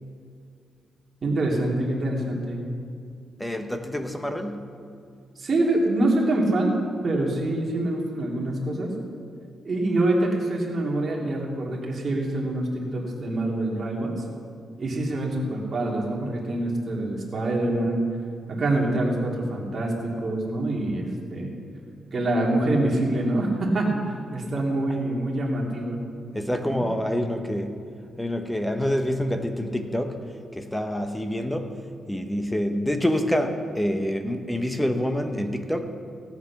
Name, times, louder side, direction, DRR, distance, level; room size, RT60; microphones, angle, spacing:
voice 1, 1.2-2.6 5.4-6.8 7.0-8.9 9.6-14.2 14.8-18.0 18.5-21.6 22.1-24.0 24.3-26.0 26.6-26.8, right 1 dB, 35° right, -2 dB, 2.4 m, -25 dB
voice 2, 3.4-4.7 26.3-27.8 28.2-30.2 30.5-31.8 32.1-35.9, equal, 5° left, 6 dB, 0.8 m, -27 dB
16.5 x 8.4 x 5.8 m, 2.3 s
wide cardioid pair, 170°, 0 cm